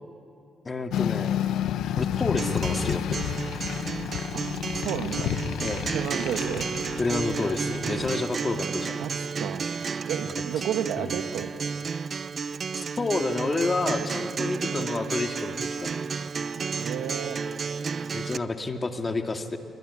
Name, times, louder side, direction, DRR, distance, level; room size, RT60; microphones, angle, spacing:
voice 1, 0.6-1.4 2.0-3.2 5.6-5.9 7.0-9.0 11.0-11.1 12.7-16.0 18.1-19.6, left 3 dB, 30° left, 5 dB, 2.2 m, -29 dB
sound 1, 0.9-8.1, left 10 dB, 80° left, 0.9 m, -30 dB
Acoustic guitar, 2.4-18.4, right 5 dB, 45° right, 0.7 m, -32 dB
voice 2, 4.7-5.4 5.9-6.8 9.0-9.6 10.1-11.9 16.8-17.4, right 9 dB, 85° right, 9 dB, 1.4 m, -32 dB
26.0 x 23.0 x 9.7 m, 2.5 s
cardioid pair, 90°, 0 cm